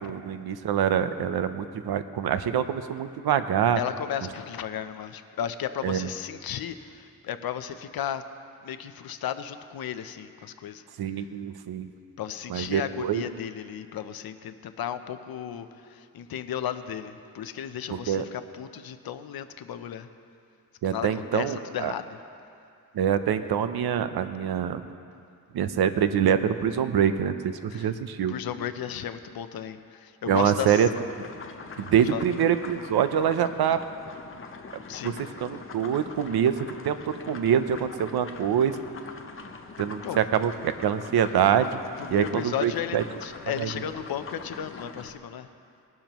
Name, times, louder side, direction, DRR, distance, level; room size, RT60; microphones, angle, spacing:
voice 1, 0.0-3.8 5.8-6.1 11.0-11.9 12.5-13.2 17.9-18.2 20.8-21.9 22.9-24.8 25.5-28.3 30.3-30.9 31.8-33.8 35.0-35.1 35.4-38.8 39.8-41.7 42.1-43.0 43.6-43.7, right 9 dB, 85° right, 10 dB, 0.7 m, -25 dB
voice 2, 3.8-8.2 8.6-10.8 12.2-20.1 20.8-22.2 27.7-27.9 28.3-30.9 32.1-32.2 34.9-35.2 40.0-40.2 42.0-45.5, left 9 dB, 70° left, 10 dB, 0.7 m, -34 dB
sound 1, 30.4-45.1, left 4 dB, 35° left, 0.7 m, -43 dB
20.0 x 12.0 x 3.0 m, 2.5 s
wide cardioid pair, 175°, 37 cm